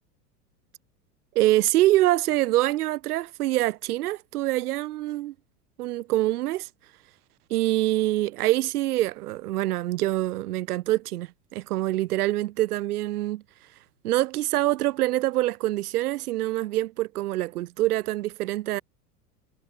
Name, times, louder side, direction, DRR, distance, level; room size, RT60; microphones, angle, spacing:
voice 1, 1.3-5.3 5.8-6.7 7.5-13.4 14.0-18.8, right 16 dB, 65° right, 6.3 m, -25 dB
figure-of-eight pair, 80°, 48 cm